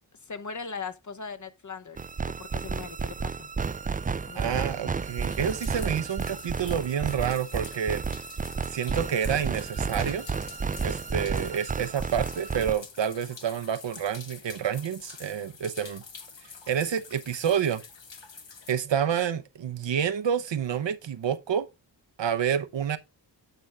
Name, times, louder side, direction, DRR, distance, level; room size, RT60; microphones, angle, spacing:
voice 1, 0.3-2.0 2.4-3.5 4.3-4.6, left 5 dB, 40° left, 0.9 m, -39 dB
sound 1, 2.0-12.7, right 5 dB, 20° right, 0.3 m, -32 dB
voice 2, 4.4-8.0 8.7-10.3 10.8-16.0 16.7-17.8 18.7-21.7 22.2-23.0, right 8 dB, 75° right, 0.9 m, -28 dB
Water leaking night parking garage indoors outdoors quiet, 5.1-18.7, left 5 dB, 75° left, 1.6 m, -47 dB
9.2 x 6.2 x 3.4 m
wide cardioid pair, 70°, 44 cm